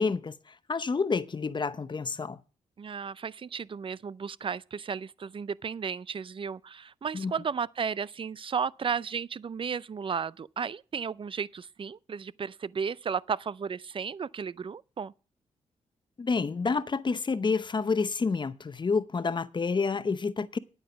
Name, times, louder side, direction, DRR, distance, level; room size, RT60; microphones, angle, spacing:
voice 1, 0.0-2.4 7.1-7.3 16.2-20.6, left 4 dB, 35° left, 0.8 m, -29 dB
voice 2, 2.8-15.1, right 6 dB, 40° right, 0.5 m, -34 dB
9.5 x 9.1 x 5.8 m
cardioid pair, 70°, 13 cm